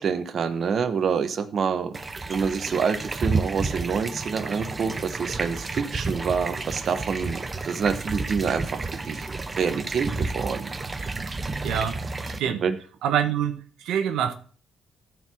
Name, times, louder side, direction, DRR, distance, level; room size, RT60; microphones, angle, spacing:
voice 1, 0.0-2.0 2.3-9.2 9.6-10.7 12.5-12.8, right 6 dB, 55° right, 9 dB, 1.0 m, -27 dB
sound 1, 1.9-12.4, right 3 dB, 25° right, 0.8 m, -31 dB
voice 2, 11.6-12.0 12.4-12.6 13.0-14.3, right 9 dB, 85° right, 8 dB, 0.9 m, -25 dB
14.0 x 4.7 x 6.1 m, 0.44 s
cardioid pair, 90°, 0 cm